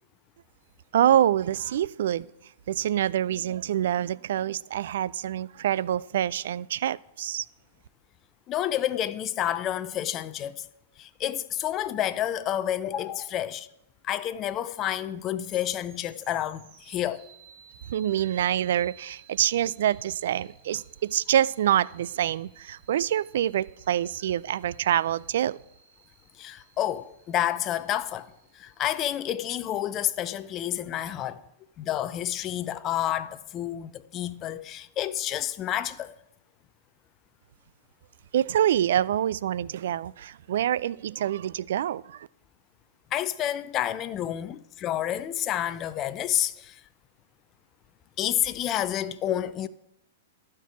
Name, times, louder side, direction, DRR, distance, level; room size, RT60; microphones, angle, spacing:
voice 1, 0.9-2.3 2.7-7.5 17.9-25.6 38.3-42.3, right 11 dB, 65° right, 0.3 m, -26 dB
voice 2, 8.5-10.7 11.0-13.7 14.0-17.3 26.4-31.4 31.8-36.1 43.1-46.8 48.2-49.7, left 11 dB, 30° left, 0.6 m, -29 dB
sound 1, 15.4-29.0, right 6 dB, 45° right, 2.5 m, -57 dB
12.0 x 4.6 x 8.3 m
hypercardioid pair, 115°, 0 cm